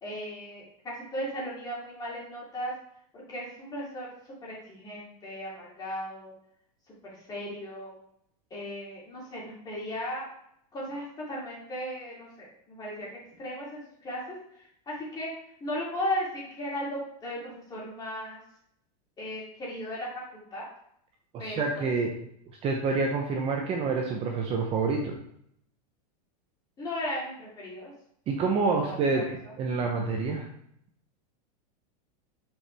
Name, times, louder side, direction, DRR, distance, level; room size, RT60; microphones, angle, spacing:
voice 1, 0.0-2.7 3.1-4.1 4.4-6.3 7.0-7.9 8.5-10.3 10.7-13.1 13.4-15.3 15.6-18.4 19.2-20.6 21.4-21.9 26.8-27.9 28.6-29.3, equal, 20° left, -6 dB, 2.8 m, -36 dB
voice 2, 21.3-22.1 22.6-25.1 28.3-29.2 29.6-30.5, right 4 dB, 25° right, 1 dB, 0.8 m, -27 dB
7.1 x 4.9 x 3.4 m, 0.72 s
supercardioid pair, 150°, 21 cm